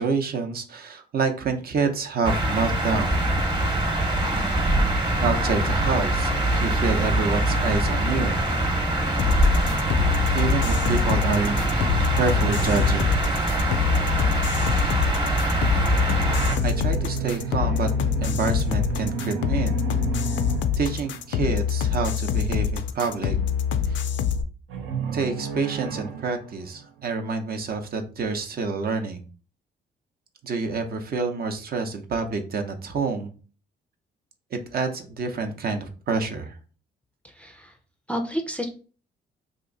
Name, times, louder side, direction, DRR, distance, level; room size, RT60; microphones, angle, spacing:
voice 1, 0.0-3.2 5.2-6.3 6.6-8.4 10.3-11.6 12.1-13.1 16.6-17.9 18.2-19.8 20.8-23.4 23.9-24.0 25.1-29.2 30.4-33.3 34.5-36.5, right 4 dB, 50° right, 5 dB, 0.7 m, -27 dB
sound 1, 2.2-16.6, right 1 dB, 25° right, 1.0 m, -23 dB
sound 2, 9.2-24.4, left 8 dB, 70° left, 0.4 m, -25 dB
sound 3, 11.2-14.3 16.0-21.7 24.7-27.1, right 4 dB, 85° right, 0.7 m, -32 dB
voice 2, 37.4-37.7 38.1-38.7, equal, 5° left, 4 dB, 0.5 m, -30 dB
2.9 x 2.5 x 3.8 m, 0.38 s
cardioid pair, 90°, 20 cm